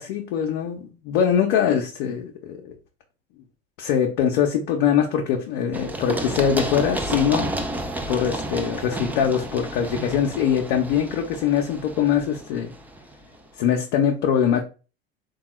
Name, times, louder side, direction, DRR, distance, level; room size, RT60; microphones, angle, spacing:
voice 1, 0.0-2.7 3.8-7.5 8.1-12.7 13.6-14.6, left 8 dB, 55° left, 0.6 m, -22 dB
Run, 5.7-13.4, right 1 dB, 5° right, 0.3 m, -31 dB
3.6 x 2.3 x 3.0 m
figure-of-eight pair, 80°, 31 cm